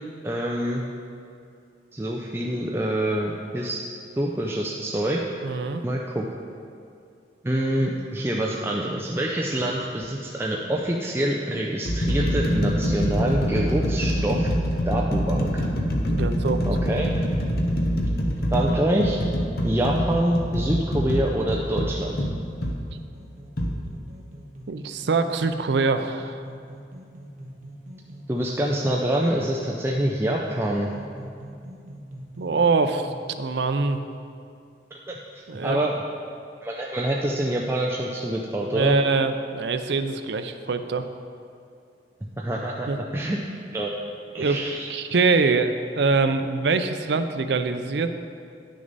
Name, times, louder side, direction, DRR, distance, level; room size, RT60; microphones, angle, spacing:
voice 1, 0.2-0.8 1.9-3.8 4.2-5.2 5.8-6.3 7.4-14.5 14.9-15.6 16.7-17.1 18.5-19.2 19.6-22.2 28.3-30.9 35.1-36.0 36.6-39.0 42.4-43.4 43.7-43.9 44.3-44.9, right 1 dB, 15° right, -2 dB, 0.4 m, -26 dB
voice 2, 5.4-5.8 16.1-16.7 24.7-26.4 32.4-34.0 35.5-35.8 38.7-41.0 42.9-43.0 44.4-44.6 44.9-48.1, right 4 dB, 70° right, 8 dB, 0.5 m, -24 dB
sound 1, 9.6-9.8 10.7-10.8 11.5-22.8 23.6-23.7, equal, 55° left, 0.8 m, -25 dB
sound 2, 21.7-33.2, right 1 dB, 40° right, 1.1 m, -43 dB
10.5 x 6.3 x 4.0 m, 2.4 s
head